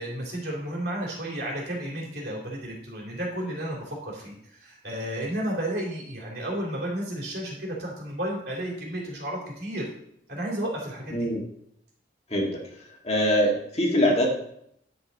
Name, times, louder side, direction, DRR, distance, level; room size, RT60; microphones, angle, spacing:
voice 1, 0.0-9.8 10.3-11.3, right 1 dB, 60° right, -3 dB, 3.2 m, -32 dB
voice 2, 11.1-11.4 12.3-12.6 13.0-14.3, equal, 35° left, -1 dB, 1.9 m, -23 dB
10.5 x 7.0 x 4.1 m, 0.73 s
head